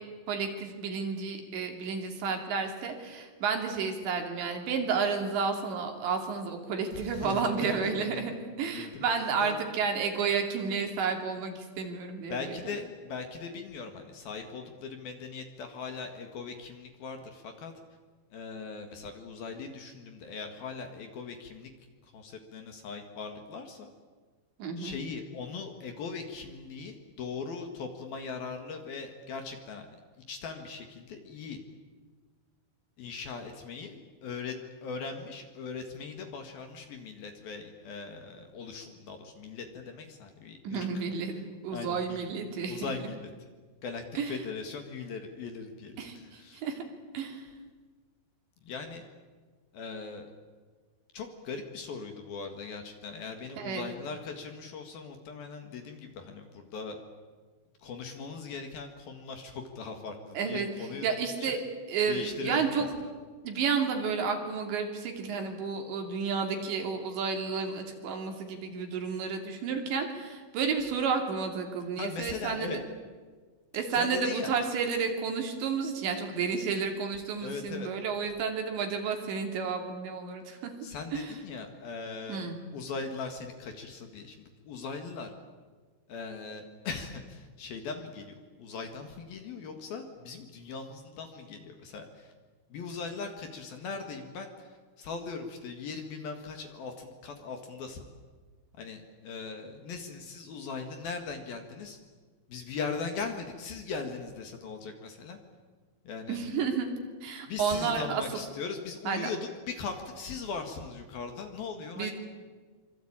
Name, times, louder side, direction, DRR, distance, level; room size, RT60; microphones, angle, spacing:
voice 1, 0.3-12.6 24.6-25.0 40.6-41.4 41.6-42.9 44.1-44.4 46.0-46.8 47.1-47.5 53.6-53.9 60.3-61.6 61.9-62.9 63.4-72.7 73.7-80.7 81.1-81.3 82.3-82.6 106.3-106.9 107.2-108.2 109.1-109.3 112.0-112.1, right 5 dB, 65° right, 4 dB, 4.8 m, -31 dB
voice 2, 6.9-8.3 8.6-9.1 9.4-9.5 12.3-17.7 18.3-21.7 22.0-23.9 24.8-29.9 30.3-31.6 33.0-41.0 41.7-42.3 42.7-43.3 43.8-46.6 48.6-49.0 49.7-50.3 51.1-57.0 57.8-61.1 61.4-61.6 62.1-63.1 72.0-72.8 73.9-74.6 77.4-77.9 80.8-85.3 86.1-92.3 92.7-94.7 95.0-98.0 98.8-102.0 102.5-105.4 106.0-106.4 107.5-109.4 109.7-112.1, left 5 dB, 55° left, 5 dB, 3.2 m, -39 dB
26.0 x 24.5 x 8.9 m, 1.4 s
omnidirectional pair, 5.7 m